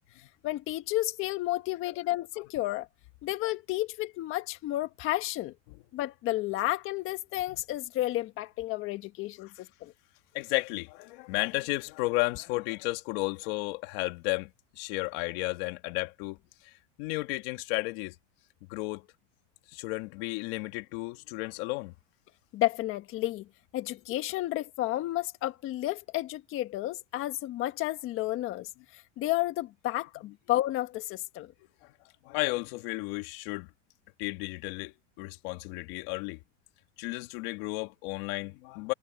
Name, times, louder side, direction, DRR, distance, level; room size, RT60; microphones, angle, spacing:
voice 1, 0.4-2.9 3.2-5.5 5.9-9.9 22.5-23.4 23.7-31.5, left 16 dB, 35° left, 1.5 m, -31 dB
voice 2, 10.3-14.5 14.8-16.4 16.6-18.2 18.7-19.1 19.7-21.9 32.3-33.7 34.2-36.4 37.0-38.9, left 23 dB, 55° left, 1.8 m, -33 dB
supercardioid pair, 145°, 36 cm